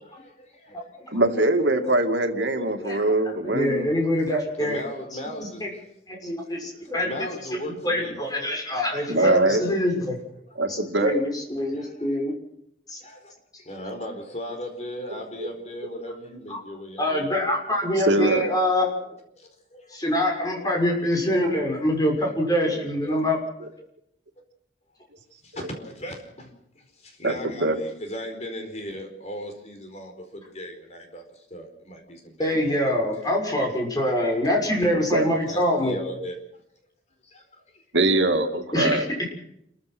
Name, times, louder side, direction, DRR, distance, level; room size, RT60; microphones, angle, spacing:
voice 1, 0.0-1.4 1.8-1.9 2.8-2.9 3.9-5.6 7.0-8.2 10.5-10.8 11.7-12.2 13.0-13.3 13.6-17.3 19.4-20.0 20.6-21.4 23.0-23.1 25.4-33.0 33.2-33.6 35.5-36.4 37.2-37.8, equal, 35° left, 5 dB, 4.7 m, -38 dB
voice 2, 1.1-3.9 9.1-9.6 10.6-11.1 15.4-15.5 18.0-18.4 27.2-27.3 27.6-27.8 35.1-35.3 37.9-39.0, right 2 dB, 80° right, 6 dB, 2.5 m, -22 dB
voice 3, 3.4-4.8 5.6-5.7 6.1-7.3 7.8-10.2 10.7-12.3 12.9-13.0 16.5-16.6 17.0-19.1 19.9-23.4 32.4-36.0 38.7-39.3, left 1 dB, 20° left, 1 dB, 6.6 m, -25 dB
29.5 x 15.0 x 6.2 m, 0.75 s
head